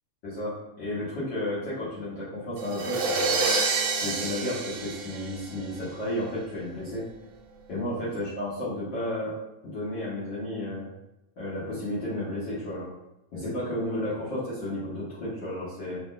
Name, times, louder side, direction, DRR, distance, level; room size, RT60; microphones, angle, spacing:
voice 1, 0.2-3.4 4.0-7.1 7.7-9.3 9.6-10.9 11.4-12.9 13.3-16.0, left 1 dB, 80° left, -11 dB, 1.0 m, -32 dB
sound 1, 2.6-5.8, right 4 dB, 80° right, 2.1 m, -28 dB
5.7 x 2.1 x 2.4 m, 0.89 s
omnidirectional pair, 3.6 m